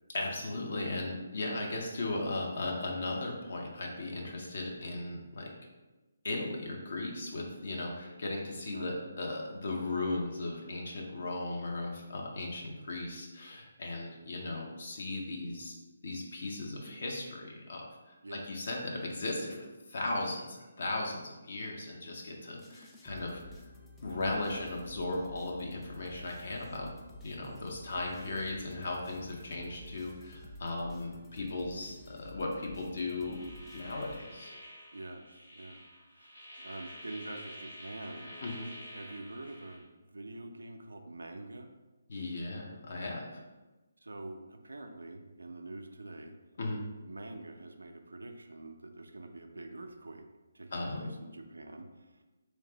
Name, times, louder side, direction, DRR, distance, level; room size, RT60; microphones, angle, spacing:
voice 1, 0.1-5.5 6.2-15.7 16.0-17.9 18.5-23.4 24.0-26.9 27.2-33.4 33.7-34.5 38.4-38.7 42.1-43.3 46.6-46.8 50.7-51.1, left 2 dB, 55° left, 0 dB, 0.6 m, -37 dB
voice 2, 8.7-9.0 18.2-18.7 34.9-35.8 36.1-38.3 38.9-39.9 40.1-41.7 44.0-46.3 47.0-50.2 50.5-52.2, right 2 dB, 70° right, 4 dB, 0.3 m, -46 dB
sound 1, 22.6-34.7, left 1 dB, 10° left, 0.3 m, -52 dB
sound 2, 33.1-39.8, equal, 70° left, 1.4 m, -49 dB
3.2 x 3.2 x 2.8 m, 1.2 s
figure-of-eight pair, 140°, 0 cm